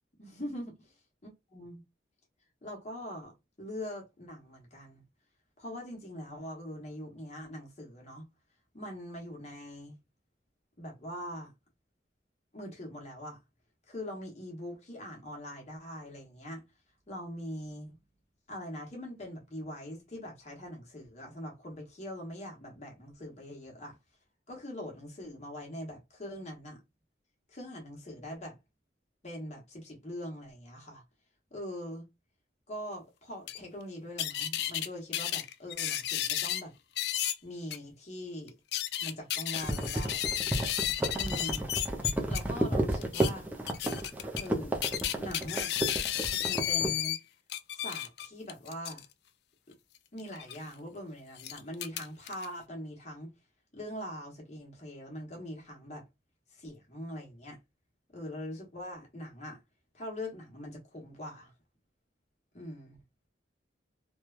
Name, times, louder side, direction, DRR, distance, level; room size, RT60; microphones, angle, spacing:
voice 1, 0.2-0.7 1.5-1.8 2.6-3.3 3.6-5.0 5.6-8.3 8.7-10.0 10.8-11.5 12.5-13.4 13.9-16.6 17.1-18.0 18.5-23.9 24.5-26.8 27.5-28.6 29.2-31.0 31.5-32.1 32.7-36.7 37.4-38.5 39.0-40.3 41.1-41.7 42.3-43.5 44.4-44.8 45.2-45.7 46.2-47.2 47.7-49.0 50.1-53.3 53.7-56.0 56.5-57.6 58.1-59.6 59.9-61.5 62.5-63.0, equal, 40° left, 1.1 m, -42 dB
sound 1, 33.5-33.6 34.2-34.9 35.1-36.6 37.0-37.3 37.7-37.8 38.5-42.4 43.0-43.3 43.7-44.5 44.8-47.2 47.5-49.0 50.4-50.6 51.4-52.5, left 12 dB, 65° left, 0.3 m, -33 dB
sound 2, 39.6-47.0, right 1 dB, 10° right, 0.5 m, -31 dB
3.0 x 2.2 x 2.3 m
head